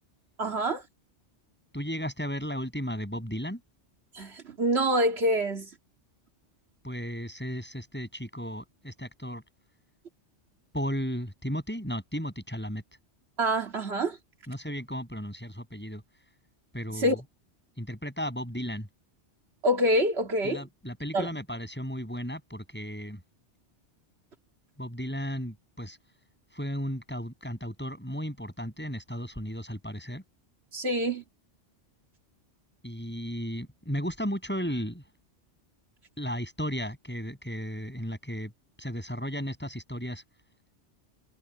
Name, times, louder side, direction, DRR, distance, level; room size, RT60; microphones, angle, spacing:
voice 1, 0.4-0.8 4.1-5.7 13.4-14.2 16.9-17.2 19.6-20.6 21.1-21.3 30.7-31.2, equal, 65° right, 2.5 m, -26 dB
voice 2, 1.7-3.6 6.8-9.4 10.7-12.8 14.5-16.0 16.7-17.2 17.8-18.9 20.4-23.2 24.8-26.0 26.5-30.2 32.8-35.0 36.2-38.5 38.8-40.2, equal, 10° left, 6.9 m, -34 dB
omnidirectional pair, 1.2 m